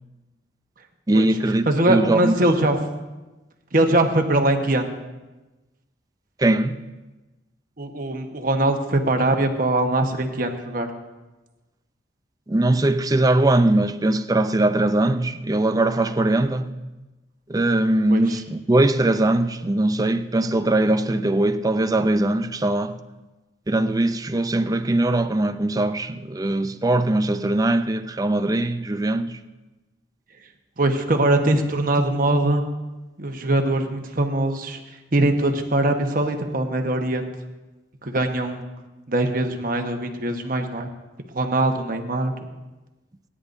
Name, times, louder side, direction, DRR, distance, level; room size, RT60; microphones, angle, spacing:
voice 1, 1.1-2.4 6.4-6.8 12.5-16.7 17.5-23.0 23.7-29.4, right 2 dB, 20° right, 0.5 m, -21 dB
voice 2, 1.7-2.8 3.7-4.9 7.8-10.9 18.1-18.2 30.8-32.6 33.2-34.8 35.1-37.2 38.0-38.6 39.1-40.9 41.3-42.5, right 1 dB, 50° right, 1.2 m, -22 dB
27.0 x 10.0 x 2.7 m
head